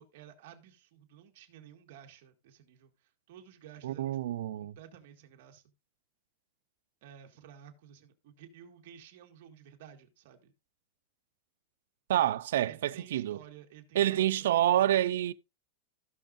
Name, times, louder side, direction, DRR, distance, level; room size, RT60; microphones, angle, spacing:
voice 1, 0.0-5.6 7.0-10.5 12.7-15.0, right 9 dB, 55° right, 1.7 m, -54 dB
voice 2, 3.8-4.8 12.1-13.4 13.9-15.3, right 12 dB, 80° right, 0.5 m, -27 dB
15.5 x 6.3 x 2.6 m
supercardioid pair, 170°, 0 cm